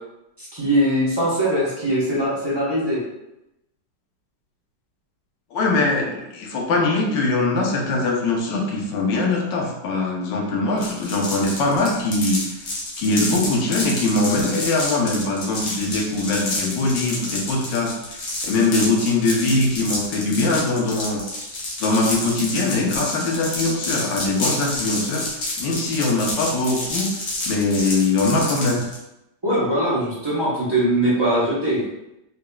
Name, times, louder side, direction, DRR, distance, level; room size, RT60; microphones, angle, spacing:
voice 1, 0.4-3.0 29.4-31.8, right 1 dB, 25° right, -9 dB, 0.5 m, -21 dB
voice 2, 5.5-12.6 13.0-21.2 21.8-25.3 25.6-28.9, left 2 dB, 75° left, -1 dB, 1.4 m, -22 dB
sound 1, 10.8-29.0, left 2 dB, 55° left, 1.1 m, -29 dB
3.8 x 3.5 x 2.2 m, 0.90 s
omnidirectional pair, 2.0 m